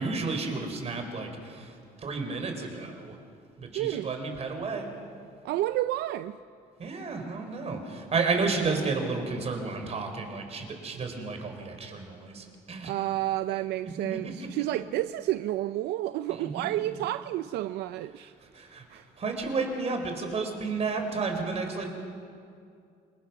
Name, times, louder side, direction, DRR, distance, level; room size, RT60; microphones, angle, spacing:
voice 1, 0.0-3.2 3.6-4.9 6.8-12.9 14.0-14.5 16.3-16.7 18.4-21.9, right 4 dB, 40° right, 4.1 m, -32 dB
voice 2, 3.7-4.1 5.4-6.4 12.8-18.3 18.9-19.1, right 14 dB, 80° right, 0.5 m, -30 dB
27.0 x 21.0 x 5.9 m
cardioid pair, 110°, 17 cm